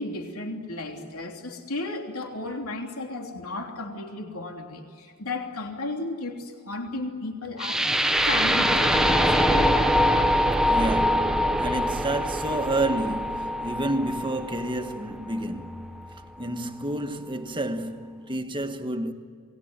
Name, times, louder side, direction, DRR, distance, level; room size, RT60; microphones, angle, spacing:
voice 1, 0.0-7.9 8.2-9.7, left 2 dB, 75° left, 3.2 m, -34 dB
sound 1, 7.6-15.6, equal, 5° right, 1.0 m, -23 dB
voice 2, 10.6-19.1, right 1 dB, 20° right, 1.5 m, -30 dB
28.0 x 20.5 x 9.7 m
head